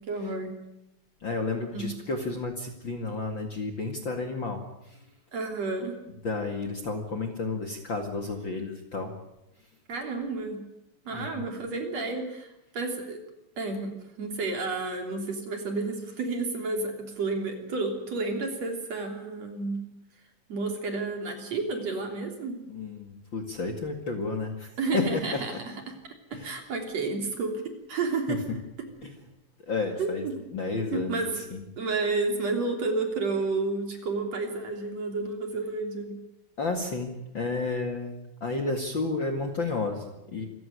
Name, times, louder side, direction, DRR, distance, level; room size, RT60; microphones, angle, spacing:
voice 1, 0.1-0.5 1.7-1.9 5.3-5.9 9.9-10.6 11.1-12.5 12.7-13.2 13.6-19.8 20.5-22.6 24.8-25.9 26.3-27.6 27.9-28.4 30.0-30.4 30.9-31.4 31.8-36.2, right 3 dB, 50° right, 4 dB, 4.3 m, -31 dB
voice 2, 1.2-4.6 6.2-9.1 11.1-11.5 22.7-25.4 26.3-26.5 28.3-28.4 29.0-29.1 29.7-30.3 30.5-31.6 36.6-40.5, left 3 dB, 40° left, 4 dB, 2.3 m, -31 dB
26.5 x 15.5 x 9.5 m, 0.88 s
omnidirectional pair, 4.0 m